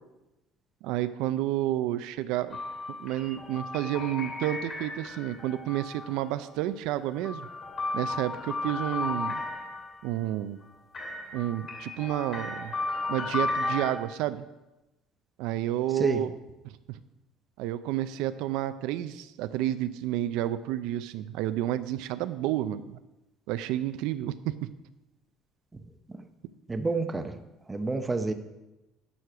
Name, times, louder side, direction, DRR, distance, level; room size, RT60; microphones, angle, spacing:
voice 1, 0.8-2.6 2.9-7.5 7.9-9.4 10.0-10.6 11.3-12.7 13.1-14.5 15.4-16.3 16.6-17.0 17.6-23.0 23.5-24.7, right 13 dB, 70° right, 12 dB, 0.5 m, -30 dB
sound 1, 2.5-6.3 7.0-10.1 10.9-13.9, left 3 dB, 30° left, 2.5 m, -34 dB
voice 2, 26.7-27.4 27.7-28.3, right 3 dB, 10° right, 7 dB, 0.6 m, -29 dB
11.0 x 6.5 x 5.9 m, 0.99 s
cardioid pair, 170°, 0 cm